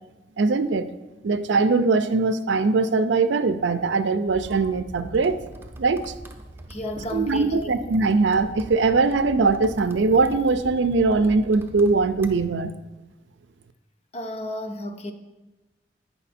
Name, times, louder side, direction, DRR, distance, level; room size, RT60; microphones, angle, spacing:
voice 1, 0.4-0.9 1.2-5.4 5.8-6.1 7.1-12.8, right 3 dB, 85° right, 11 dB, 0.5 m, -21 dB
sound 1, 4.3-12.5, right 1 dB, 15° right, 0.6 m, -42 dB
voice 2, 6.7-7.7 14.1-15.1, left 1 dB, 35° left, 6 dB, 0.7 m, -32 dB
8.9 x 5.8 x 4.2 m, 1.1 s
head